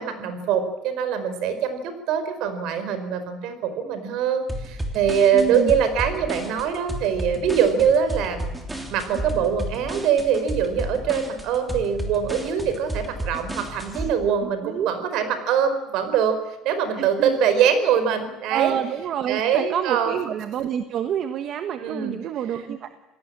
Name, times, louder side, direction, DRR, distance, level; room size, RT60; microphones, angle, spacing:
voice 1, 0.0-8.5 8.9-16.4 16.6-18.7 19.3-20.2 21.8-22.1, right 7 dB, 60° right, 10 dB, 4.8 m, -23 dB
sound 1, 4.5-14.1, right 1 dB, 10° right, 3.2 m, -32 dB
voice 2, 5.3-5.7 14.0-14.1 14.4-14.9 17.0-17.4 18.5-22.9, right 9 dB, 40° right, 9 dB, 1.3 m, -28 dB
28.0 x 18.0 x 8.8 m, 1.0 s
cardioid pair, 160°, 0 cm